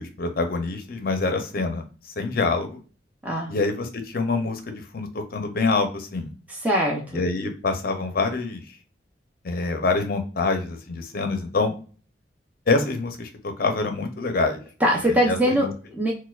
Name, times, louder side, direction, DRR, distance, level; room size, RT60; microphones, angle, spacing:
voice 1, 0.0-1.8 2.2-2.7 3.5-6.3 7.1-8.6 9.4-11.7 12.7-14.6 15.3-15.7, left 3 dB, 50° left, 6 dB, 0.5 m, -25 dB
voice 2, 3.2-3.5 6.5-7.2 14.8-16.1, equal, 10° right, -2 dB, 0.5 m, -22 dB
4.2 x 2.2 x 2.3 m, 0.38 s
head